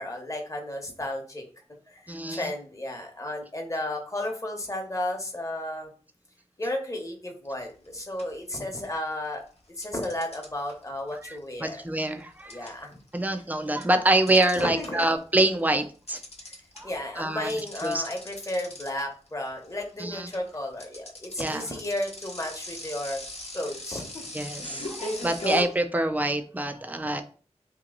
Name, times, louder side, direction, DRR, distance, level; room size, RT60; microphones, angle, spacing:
voice 1, 0.0-1.4 1.9-5.9 6.6-9.4 9.8-11.8 12.5-12.9 14.6-15.1 16.8-23.2 23.5-24.1, left 1 dB, 25° left, 1 dB, 1.0 m, -33 dB
voice 2, 2.1-2.5 11.2-12.7 13.1-16.2 16.8-18.1 20.0-20.3 21.4-21.7 24.3-27.2, right 1 dB, 15° right, 7 dB, 0.5 m, -26 dB
sound 1, 7.6-7.9 8.2-9.1 9.8-15.2 15.5-25.6, left 1 dB, 65° left, 0.9 m, -39 dB
3.0 x 2.8 x 3.8 m, 0.38 s
wide cardioid pair, 65°, 12 cm